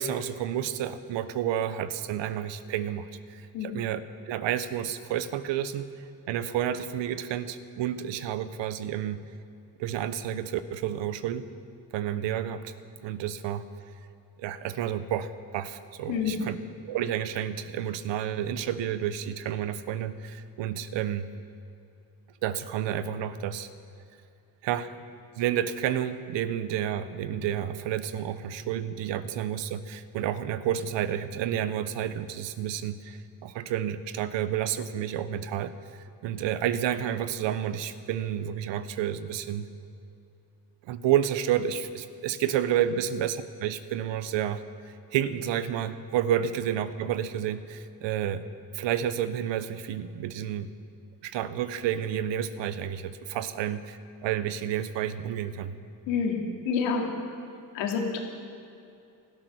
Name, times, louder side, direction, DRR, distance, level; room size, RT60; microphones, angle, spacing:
voice 1, 0.0-4.0 4.3-9.2 9.8-11.5 11.9-12.7 13.0-13.6 14.4-16.6 16.9-21.3 22.4-23.7 24.6-24.9 25.4-35.7 36.2-39.7 40.9-44.6 45.1-48.4 48.7-50.7 51.2-55.8, right 10 dB, 80° right, 12 dB, 1.0 m, -30 dB
voice 2, 16.1-16.4 56.1-56.4 56.6-57.0 57.7-58.2, left 6 dB, 90° left, 1 dB, 2.7 m, -27 dB
18.0 x 12.5 x 6.3 m, 2.6 s
cardioid pair, 85°, 43 cm